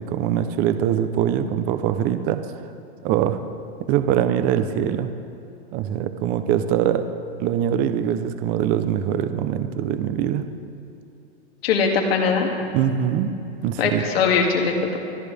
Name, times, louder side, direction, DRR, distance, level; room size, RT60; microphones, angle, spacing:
voice 1, 0.0-2.4 3.0-3.4 3.8-5.1 5.7-7.0 7.4-10.5 12.7-13.3 13.6-14.0, right 10 dB, 25° right, 10 dB, 0.7 m, -23 dB
voice 2, 11.6-12.5 13.8-15.0, left 5 dB, 70° left, 1 dB, 2.4 m, -21 dB
28.0 x 10.5 x 3.5 m, 2.8 s
supercardioid pair, 150°, 31 cm